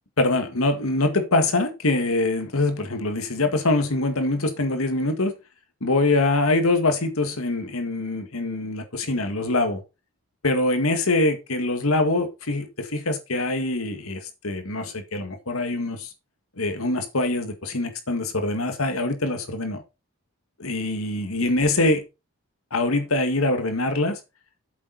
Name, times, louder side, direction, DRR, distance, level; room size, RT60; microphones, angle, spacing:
voice 1, 0.2-5.3 5.8-9.8 10.4-16.1 16.6-19.8 20.6-22.0 22.7-24.2, left 2 dB, 85° left, 1.9 m, -24 dB
8.6 x 7.4 x 4.1 m
head